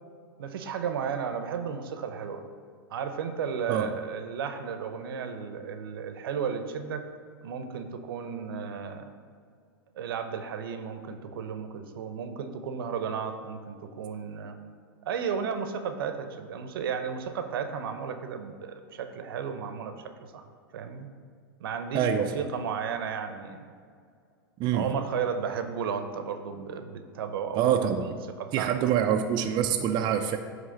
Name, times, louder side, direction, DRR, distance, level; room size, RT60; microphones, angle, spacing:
voice 1, 0.4-2.5 2.9-7.0 7.4-9.1 10.0-14.6 15.1-20.4 20.7-21.1 21.6-23.7 24.7-28.9, right 6 dB, 70° right, 8 dB, 0.8 m, -34 dB
voice 2, 21.9-22.4 24.6-24.9 27.6-28.2 28.5-30.4, right 9 dB, 35° right, 4 dB, 0.5 m, -25 dB
9.2 x 3.3 x 6.5 m, 2.2 s
hypercardioid pair, 110°, 12 cm